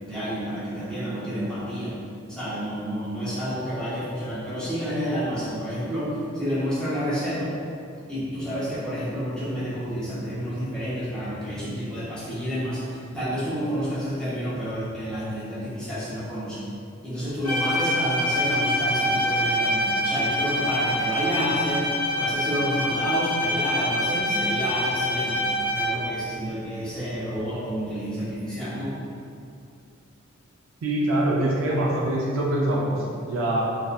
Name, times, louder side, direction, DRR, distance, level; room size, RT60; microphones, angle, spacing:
voice 1, 0.0-1.9 2.3-7.5 8.1-16.6 17.0-21.9 22.1-25.5 25.7-29.0, equal, 5° left, -12 dB, 0.6 m, -29 dB
Bowed string instrument, 17.4-26.2, equal, 85° left, 0.8 m, -25 dB
voice 2, 30.8-33.6, right 1 dB, 80° right, -4 dB, 0.4 m, -24 dB
2.6 x 2.1 x 2.2 m, 2.4 s
head